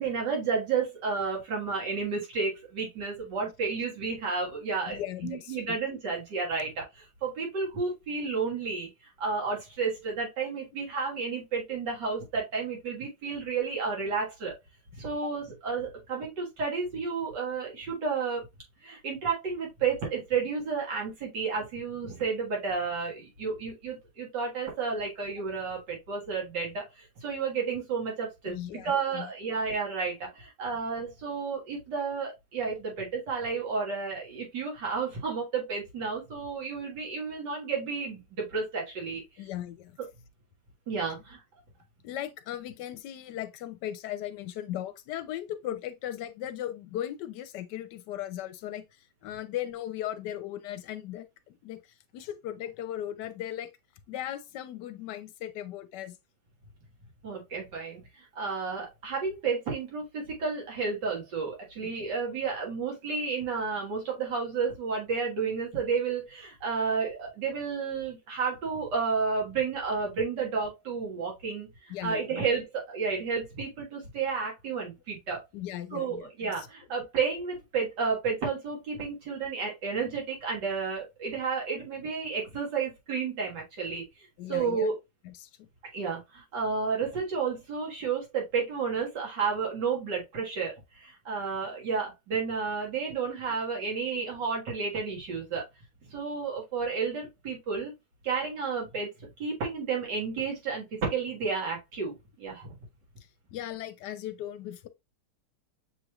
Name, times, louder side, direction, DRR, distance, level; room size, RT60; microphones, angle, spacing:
voice 1, 0.0-14.6 15.0-18.5 18.8-39.2 40.9-41.4 57.2-75.4 75.9-84.9 85.9-95.6 96.1-97.9 98.2-102.8, right 5 dB, 75° right, 2.3 m, -31 dB
voice 2, 4.9-5.8 10.7-10.8 28.5-29.3 39.4-40.0 42.0-48.8 49.2-51.3 51.6-51.8 52.1-53.7 54.1-56.2 61.8-61.9 71.9-72.5 75.5-76.7 84.4-84.9 85.2-85.7 103.5-104.9, left 12 dB, 80° left, 1.2 m, -37 dB
6.6 x 3.2 x 2.3 m
omnidirectional pair, 1.8 m